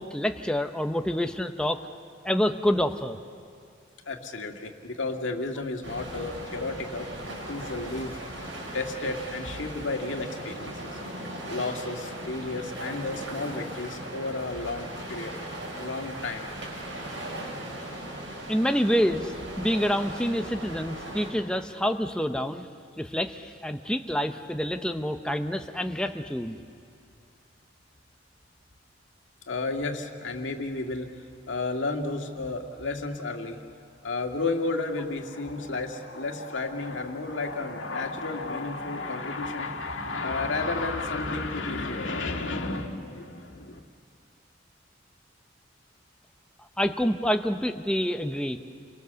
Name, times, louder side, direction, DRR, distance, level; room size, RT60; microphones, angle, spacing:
voice 1, 0.0-1.8 2.2-3.2 18.5-22.7 23.0-26.6 46.8-48.6, equal, 5° left, 6 dB, 0.7 m, -27 dB
voice 2, 4.1-8.2 8.7-11.0 11.5-15.3 15.7-16.5 29.5-31.1 31.5-33.6 34.0-43.8, left 3 dB, 90° left, 3 dB, 2.0 m, -32 dB
sound 1, 5.8-21.3, right 1 dB, 85° right, 6.9 m, -38 dB
29.5 x 23.5 x 7.0 m, 2.4 s
head